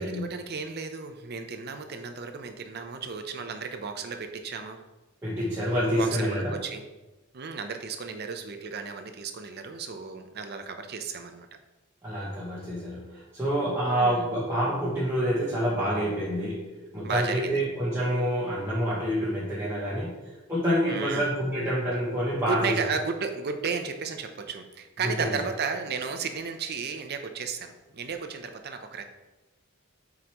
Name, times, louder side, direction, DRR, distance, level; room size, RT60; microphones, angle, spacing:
voice 1, 0.0-4.8 6.0-6.8 7.3-11.5 14.0-14.3 17.0-17.6 20.9-21.3 22.4-29.0, right 5 dB, 50° right, 6 dB, 0.7 m, -34 dB
voice 2, 5.2-6.6 12.0-20.1 20.5-22.8 25.2-25.3, equal, 10° right, -9 dB, 1.2 m, -27 dB
7.8 x 4.9 x 3.0 m, 1.1 s
head